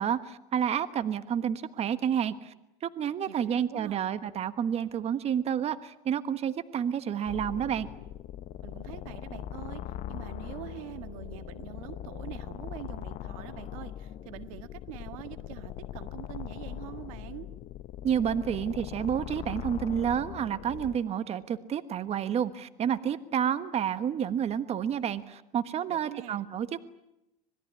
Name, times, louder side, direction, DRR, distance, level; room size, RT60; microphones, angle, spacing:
voice 1, 0.0-2.5 2.8-7.9 18.0-26.9, right 8 dB, 35° right, 12 dB, 1.4 m, -30 dB
voice 2, 3.3-4.1 8.6-17.5 25.9-26.4, right 15 dB, 75° right, 11 dB, 1.7 m, -44 dB
sound 1, 7.3-21.0, left 11 dB, 50° left, 1.0 m, -41 dB
25.5 x 20.5 x 9.9 m, 0.91 s
hypercardioid pair, 100°, 18 cm